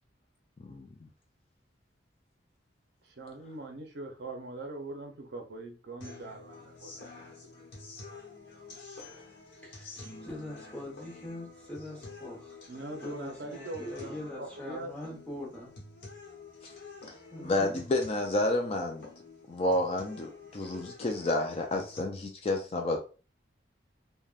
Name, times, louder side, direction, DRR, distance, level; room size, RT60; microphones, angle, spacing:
voice 1, 0.6-1.1 17.4-19.0 19.5-23.0, left 1 dB, 30° left, 0.3 m, -30 dB
voice 2, 3.0-7.6 12.7-15.2, right 2 dB, 65° right, 0.5 m, -42 dB
sound 1, 6.0-22.0, left 3 dB, 65° left, 0.9 m, -49 dB
voice 3, 8.9-9.2 9.6-12.6 12.9-15.7 17.3-17.8, left 1 dB, 5° left, 1.0 m, -43 dB
3.3 x 2.1 x 2.3 m
head